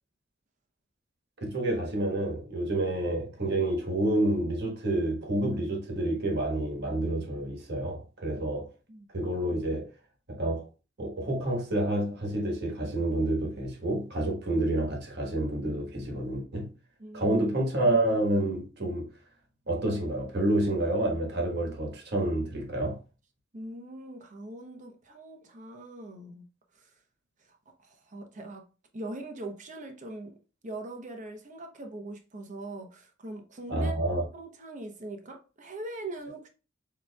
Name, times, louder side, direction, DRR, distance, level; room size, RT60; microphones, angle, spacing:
voice 1, 1.4-8.7 9.1-9.9 10.3-10.7 11.0-16.7 17.1-19.1 19.7-23.0 33.7-34.3, right 1 dB, 55° right, 1.4 m, -28 dB
voice 2, 17.0-17.4 23.5-26.5 26.7-26.9 27.4-27.6 27.8-28.6 28.9-30.4 30.6-33.9 34.3-36.5, right 2 dB, 40° right, 0.8 m, -41 dB
7.0 x 3.0 x 2.3 m
head